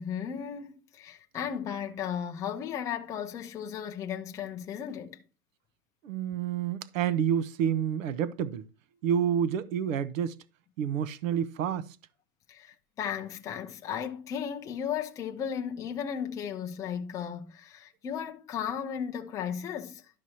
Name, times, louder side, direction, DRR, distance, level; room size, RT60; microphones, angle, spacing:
voice 1, 0.0-5.2 12.5-20.1, left 8 dB, 10° left, 0.4 m, -35 dB
voice 2, 6.0-8.7 9.0-10.4 10.8-12.0, right 8 dB, 65° right, 1.0 m, -29 dB
12.0 x 6.1 x 2.8 m
hypercardioid pair, 130°, 43 cm